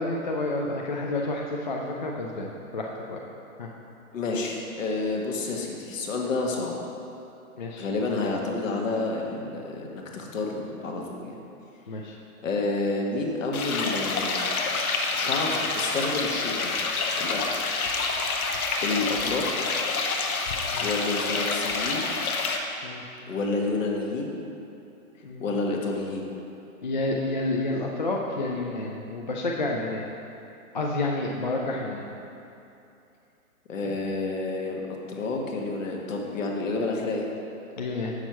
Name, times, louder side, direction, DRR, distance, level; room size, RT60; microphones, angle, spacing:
voice 1, 0.0-3.2 3.6-3.7 7.6-7.9 11.9-12.2 20.7-20.9 22.8-23.0 25.2-25.4 26.8-30.0 30.7-32.1 37.8-38.1, left 2 dB, 35° left, -1 dB, 0.4 m, -29 dB
voice 2, 4.1-6.7 7.8-11.3 12.4-14.5 15.1-16.7 17.2-17.4 18.8-19.4 20.8-22.1 23.3-24.4 25.4-26.3 33.7-37.3, left 3 dB, 60° left, 0 dB, 1.4 m, -29 dB
sound 1, 13.5-22.6, left 4 dB, 75° left, 1.0 m, -28 dB
7.1 x 6.4 x 4.5 m, 2.8 s
hypercardioid pair, 155°, 44 cm